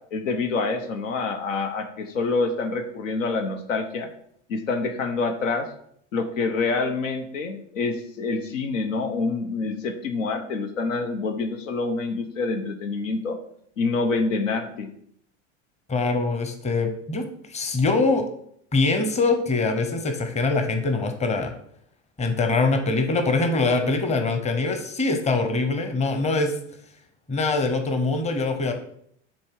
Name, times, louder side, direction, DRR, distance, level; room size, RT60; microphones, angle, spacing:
voice 1, 0.1-4.1 4.5-5.7 6.1-13.4 13.8-14.9, left 3 dB, 85° left, 7 dB, 1.0 m, -26 dB
voice 2, 15.9-18.3 18.7-21.5 22.2-26.5 27.3-28.7, left 3 dB, 20° left, 6 dB, 0.9 m, -23 dB
7.1 x 3.3 x 4.7 m, 0.68 s
hypercardioid pair, 90°, 37 cm